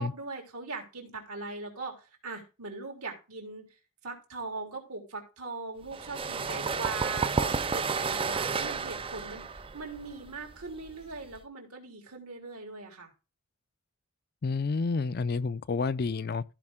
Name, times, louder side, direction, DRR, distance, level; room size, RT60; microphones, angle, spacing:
voice 1, 0.0-3.7 4.0-13.1, right 3 dB, 80° right, 3.5 m, -40 dB
sound 1, 5.9-11.4, right 5 dB, 25° right, 0.4 m, -31 dB
voice 2, 14.4-16.4, left 4 dB, 45° left, 0.4 m, -29 dB
15.0 x 5.1 x 3.6 m
head